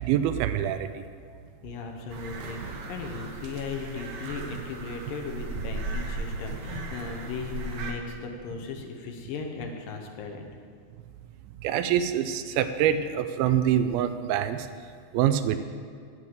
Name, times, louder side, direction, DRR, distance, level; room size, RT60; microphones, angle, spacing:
voice 1, 0.0-1.0 11.6-14.7 15.1-15.6, right 10 dB, 85° right, 11 dB, 2.4 m, -25 dB
voice 2, 1.6-10.5, left 5 dB, 70° left, 3 dB, 2.4 m, -37 dB
sound 1, 2.1-7.9, right 3 dB, 65° right, 2.2 m, -36 dB
9.5 x 8.9 x 7.6 m, 2.2 s
omnidirectional pair, 4.4 m